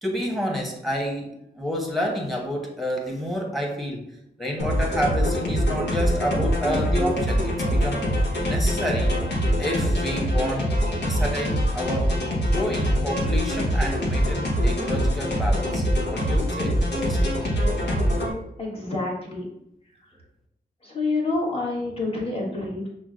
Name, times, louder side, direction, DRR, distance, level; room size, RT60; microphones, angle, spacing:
voice 1, 0.0-4.1 4.4-8.0 8.5-9.1 9.6-10.7 11.0-12.2 12.5-17.3, equal, ahead, 0 dB, 1.1 m, -29 dB
sound 1, 4.6-18.3, equal, 85° left, 1.0 m, -24 dB
voice 2, 18.6-19.5 20.8-22.9, left 2 dB, 35° left, -4 dB, 1.4 m, -27 dB
5.9 x 2.2 x 2.4 m, 0.80 s
cardioid pair, 65°, 17 cm